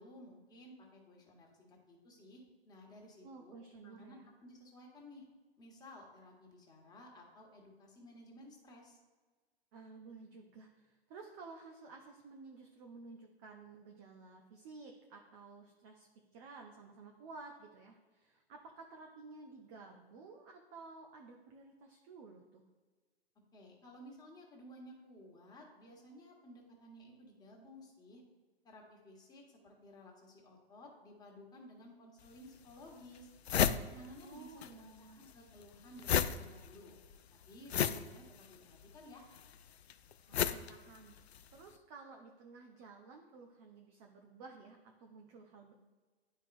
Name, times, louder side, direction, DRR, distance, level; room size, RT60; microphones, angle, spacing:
voice 1, 0.0-5.2 5.6-9.0 23.5-28.2 28.6-33.3 33.9-37.0 37.5-39.2, left 1 dB, 10° left, -1 dB, 1.4 m, -55 dB
voice 2, 3.2-4.3 9.7-16.1 16.3-22.6 34.2-35.3 40.3-41.2 41.5-45.7, right 4 dB, 15° right, 2 dB, 0.3 m, -53 dB
sound 1, 32.2-32.3 32.9-33.0 33.2-34.7 35.0-41.5, left 9 dB, 80° left, 0.5 m, -34 dB
9.7 x 4.6 x 2.5 m, 1.4 s
figure-of-eight pair, 115°, 32 cm